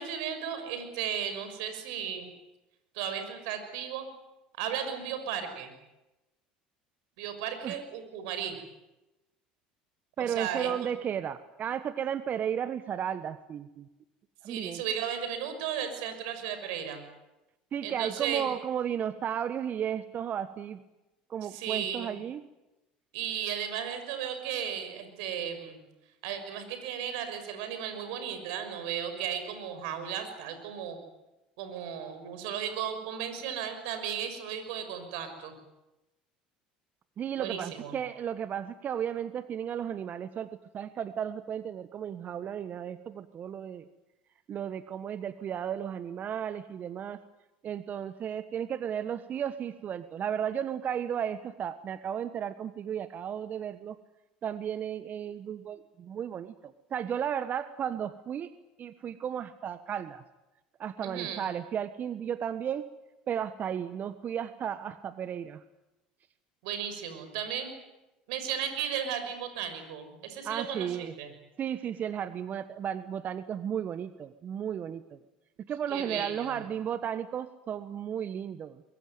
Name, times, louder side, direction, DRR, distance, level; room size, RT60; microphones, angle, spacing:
voice 1, 0.0-2.3 2.9-4.1 4.6-5.7 7.2-8.6 10.2-10.9 14.5-17.0 17.8-18.5 21.4-22.2 23.1-25.8 26.2-31.0 31.6-35.5 37.4-38.0 61.0-61.4 66.6-67.7 68.3-71.3 75.9-76.6, right 8 dB, 70° right, 8 dB, 6.1 m, -35 dB
voice 2, 10.2-13.9 14.4-14.8 17.7-20.8 21.3-22.4 37.2-40.5 40.7-43.9 44.5-47.2 47.6-54.0 54.4-58.5 58.8-60.2 60.8-62.8 63.3-65.6 70.4-71.1 71.6-75.0 75.6-78.8, right 9 dB, 45° right, 12 dB, 1.4 m, -34 dB
23.5 x 22.5 x 9.4 m, 0.99 s
hypercardioid pair, 70°, 4 cm